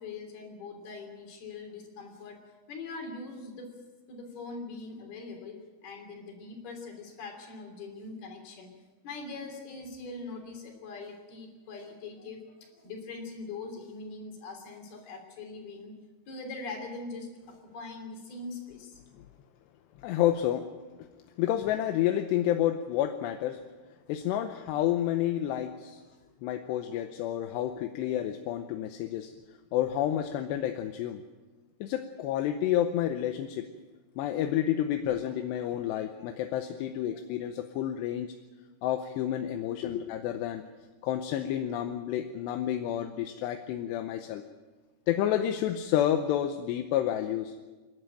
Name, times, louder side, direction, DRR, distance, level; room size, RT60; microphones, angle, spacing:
voice 1, 0.0-2.4 2.7-3.8 4.1-8.7 9.0-15.9 16.3-19.0 35.7-36.3 39.8-40.0, left 3 dB, 65° left, 3 dB, 5.1 m, -42 dB
voice 2, 20.0-20.6 21.4-23.6 24.1-26.0 26.4-29.3 29.7-31.2 31.8-33.6 34.2-38.3 38.8-40.0 40.2-40.6 41.0-44.4 45.1-47.6, left 11 dB, 85° left, 6 dB, 3.0 m, -29 dB
27.0 x 11.5 x 9.1 m, 1.3 s
omnidirectional pair, 4.8 m